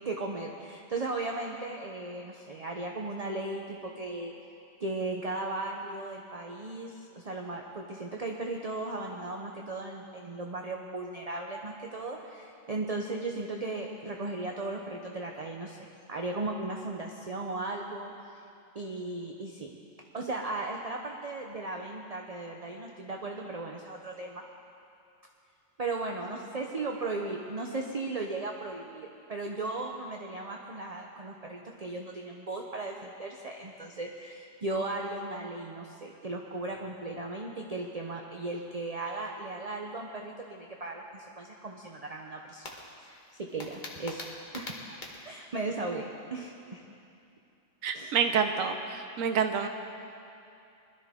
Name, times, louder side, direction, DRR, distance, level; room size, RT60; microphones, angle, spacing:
voice 1, 0.0-4.3 4.8-18.1 18.7-19.7 20.1-24.4 25.8-42.7 43.0-45.0 45.2-46.8 47.9-48.1, right 2 dB, 35° right, 1 dB, 0.8 m, -36 dB
sound 1, 42.6-45.3, left 2 dB, 35° left, 1.4 m, -43 dB
voice 2, 47.8-49.7, right 7 dB, 85° right, 6 dB, 1.1 m, -28 dB
20.5 x 12.5 x 3.6 m, 2.6 s
omnidirectional pair, 1.4 m